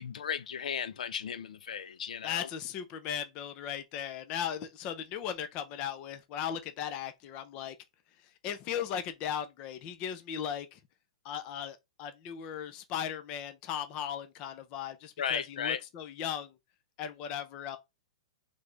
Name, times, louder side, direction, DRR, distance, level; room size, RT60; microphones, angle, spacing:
voice 1, 0.0-2.5 15.2-15.8, left 7 dB, 75° left, 0.5 m, -35 dB
voice 2, 2.2-7.7 8.4-10.8 11.2-16.5 17.0-17.8, left 9 dB, 20° left, 0.5 m, -37 dB
3.4 x 3.3 x 3.8 m
hypercardioid pair, 175°, 4 cm